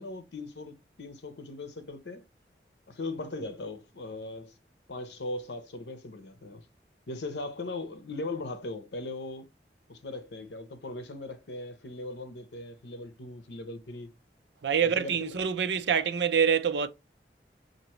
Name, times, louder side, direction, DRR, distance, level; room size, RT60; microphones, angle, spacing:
voice 1, 0.0-2.2 2.9-4.5 4.9-6.6 7.1-9.5 9.9-14.1 14.8-15.3, left 2 dB, 85° left, 0.7 m, -39 dB
voice 2, 14.6-16.9, right 7 dB, 80° right, 0.5 m, -26 dB
5.8 x 2.6 x 3.0 m
head